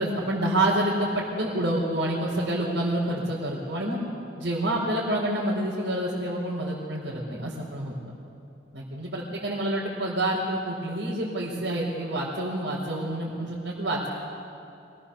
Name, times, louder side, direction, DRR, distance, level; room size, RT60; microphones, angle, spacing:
voice 1, 0.0-4.0 4.4-7.9 8.7-14.1, right 1 dB, 85° right, -7 dB, 4.4 m, -28 dB
27.0 x 20.5 x 7.1 m, 2.6 s
head